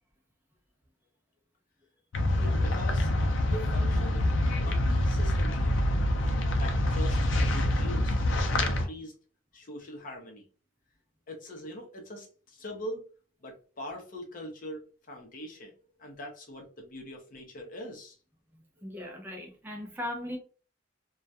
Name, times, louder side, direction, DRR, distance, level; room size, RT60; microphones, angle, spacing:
sound 1, 2.1-8.8, left 1 dB, 85° left, 0.5 m, -26 dB
voice 1, 2.1-3.1 3.4-4.2 4.6-5.7 6.5-8.1 8.5-9.1 9.5-10.4 11.3-13.0 13.4-14.8 15.1-18.2, equal, 45° left, 0.7 m, -42 dB
voice 2, 18.8-20.4, left 1 dB, 10° right, 0.4 m, -38 dB
2.2 x 2.1 x 2.6 m
head